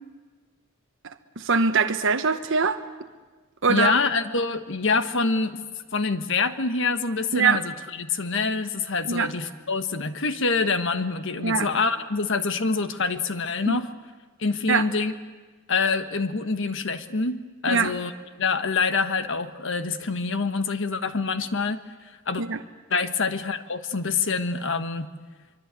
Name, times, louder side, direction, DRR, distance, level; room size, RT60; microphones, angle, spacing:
voice 1, 1.0-2.8 3.6-4.0 7.3-7.6 9.1-9.3 11.4-11.7 13.7-13.8 14.7-14.8 17.7-17.9 22.4-22.6, right 5 dB, 65° right, 7 dB, 1.0 m, -22 dB
voice 2, 3.7-5.6 5.9-13.9 14.4-15.1 15.7-18.1 18.4-21.8 22.3-22.4 22.9-25.1, left 4 dB, 65° left, 10 dB, 1.3 m, -26 dB
24.5 x 24.0 x 8.4 m, 1.3 s
head